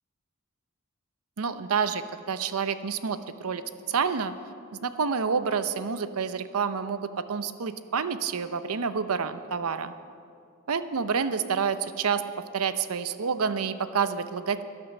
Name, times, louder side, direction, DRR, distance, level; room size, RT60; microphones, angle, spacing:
voice 1, 1.4-2.0 2.3-3.6 3.9-4.3 4.7-9.9 10.7-12.2 12.5-14.6, right 6 dB, 90° right, 12 dB, 0.7 m, -28 dB
12.0 x 11.0 x 6.5 m, 2.4 s
head